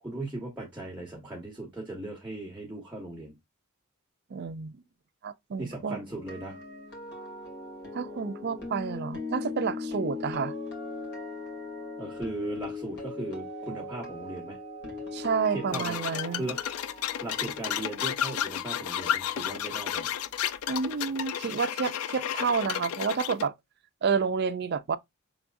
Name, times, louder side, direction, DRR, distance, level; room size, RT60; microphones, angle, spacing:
voice 1, 0.0-3.3 5.6-6.6 12.0-14.6 15.5-16.6 17.2-20.1, right 2 dB, 10° right, 1.2 m, -38 dB
voice 2, 4.3-4.8 5.2-6.0 7.9-10.5 15.1-16.5 20.7-23.5 24.0-25.0, right 5 dB, 50° right, 0.5 m, -29 dB
sound 1, 6.1-20.1 20.4-20.7, left 3 dB, 55° left, 2.0 m, -40 dB
sound 2, 15.7-23.5, left 10 dB, 85° left, 0.4 m, -32 dB
5.9 x 3.4 x 2.5 m
head